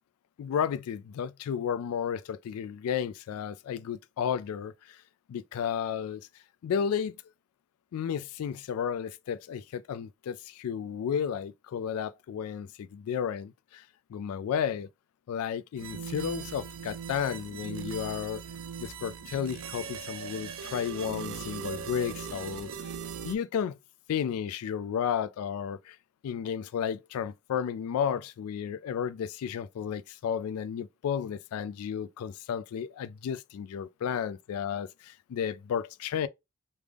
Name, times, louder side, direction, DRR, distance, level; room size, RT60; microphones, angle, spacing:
voice 1, 0.4-5.0 5.3-6.3 6.6-7.1 7.9-13.8 14.1-14.9 15.3-18.4 18.8-22.9 23.2-23.8 24.1-26.0 26.2-36.3, left 8 dB, 85° left, 0.3 m, -33 dB
sound 1, 15.8-23.3, right 7 dB, 75° right, 0.5 m, -39 dB
3.4 x 2.4 x 3.3 m
head